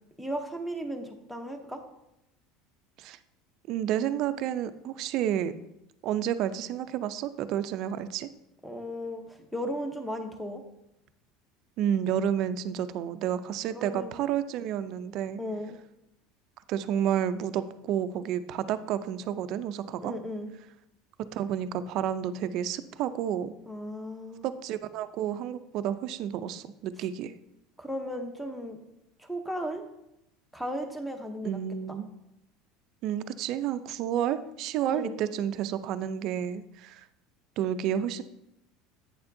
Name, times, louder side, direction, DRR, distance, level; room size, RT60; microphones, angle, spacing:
voice 1, 0.2-1.8 8.6-10.6 13.7-14.2 15.4-15.8 20.0-20.5 23.7-24.5 27.8-28.8 29.2-29.8 30.5-31.6 31.9-32.0 34.8-35.2, equal, ahead, 5 dB, 0.7 m, -35 dB
voice 2, 3.7-5.5 6.0-8.3 11.8-15.4 16.7-20.1 21.2-23.5 24.4-27.3 31.4-32.1 33.0-37.0 37.6-38.2, right 10 dB, 50° right, 12 dB, 0.4 m, -30 dB
8.7 x 6.9 x 2.6 m, 0.85 s
cardioid pair, 155°, 0 cm